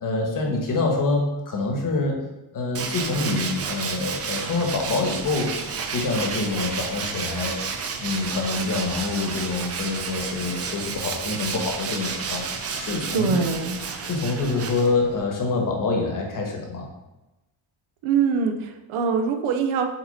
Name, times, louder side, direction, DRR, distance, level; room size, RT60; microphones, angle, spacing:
voice 1, 0.0-2.2 2.5-5.5 5.8-7.5 8.0-12.4 12.7-13.3 14.0-16.9, left 3 dB, 40° left, 1 dB, 1.4 m, -26 dB
Tools, 2.7-15.2, right 5 dB, 30° right, 0.5 m, -31 dB
voice 2, 13.1-13.8 18.0-19.9, right 5 dB, 85° right, 5 dB, 0.9 m, -23 dB
7.3 x 4.3 x 4.2 m, 1.0 s
cardioid pair, 170°, 48 cm